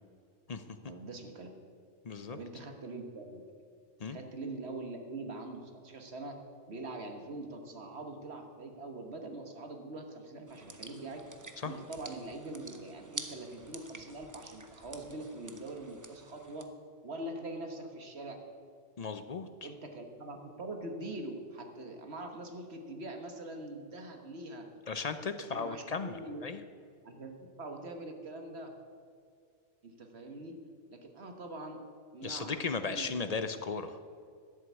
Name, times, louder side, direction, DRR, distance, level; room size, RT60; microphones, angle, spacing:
voice 1, 0.9-1.5 2.3-3.4 4.1-6.4 6.7-11.2 11.6-16.7 17.0-18.4 19.6-24.6 25.2-26.4 27.0-27.3 27.6-28.7 29.8-30.5 30.9-31.8 32.1-33.4, right 2 dB, 65° right, 4 dB, 1.6 m, -43 dB
voice 2, 2.0-2.4 4.0-4.2 11.6-11.7 19.0-19.5 24.9-26.6 32.2-34.0, left 4 dB, 45° left, 10 dB, 0.6 m, -36 dB
sound 1, 10.5-16.6, right 2 dB, 20° right, 0.7 m, -48 dB
12.0 x 7.9 x 8.2 m, 2.2 s
omnidirectional pair, 1.2 m